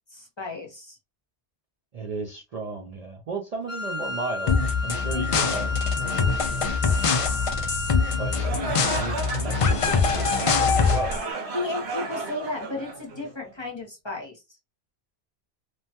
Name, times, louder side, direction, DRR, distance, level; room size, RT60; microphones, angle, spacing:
voice 1, 0.1-1.0 11.5-14.4, left 2 dB, 30° left, 0.8 m, -34 dB
voice 2, 1.9-4.6 4.8-5.7 7.6-7.8 8.2-11.2, right 4 dB, 50° right, 0.5 m, -35 dB
Wind instrument woodwind instrument, 3.7-8.5, left 3 dB, 5° right, 1.0 m, -32 dB
sound 1, 4.5-11.2, left 5 dB, 60° left, 0.3 m, -24 dB
sound 2, 8.3-13.5, right 3 dB, 85° right, 1.1 m, -33 dB
3.0 x 2.1 x 2.7 m
omnidirectional pair, 1.1 m